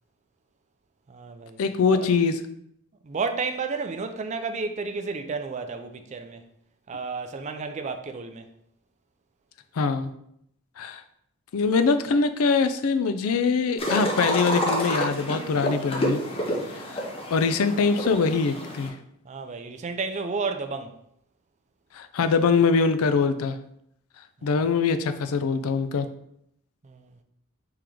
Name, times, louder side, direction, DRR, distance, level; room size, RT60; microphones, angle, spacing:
voice 1, 1.1-1.6 1.9-2.0 3.0-6.4 6.9-8.5 19.2-20.9 24.4-24.5 26.8-27.1, right 4 dB, 30° right, 0.3 m, -32 dB
voice 2, 1.6-2.3 9.8-10.1 10.8-11.0 11.5-16.2 16.7-17.0 17.3-18.9 21.9-23.6 24.4-26.1, left 4 dB, 70° left, 0.4 m, -23 dB
sound 1, 13.8-18.9, equal, 25° left, 0.7 m, -29 dB
3.7 x 3.0 x 4.8 m
head